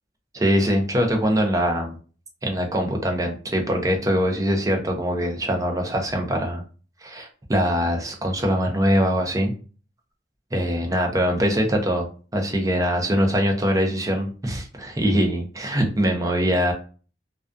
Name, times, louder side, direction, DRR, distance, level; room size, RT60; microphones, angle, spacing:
voice 1, 0.3-2.0 2.4-6.6 7.0-9.5 10.5-16.7, equal, 20° right, 2 dB, 0.5 m, -23 dB
2.3 x 2.3 x 2.5 m, 0.37 s
head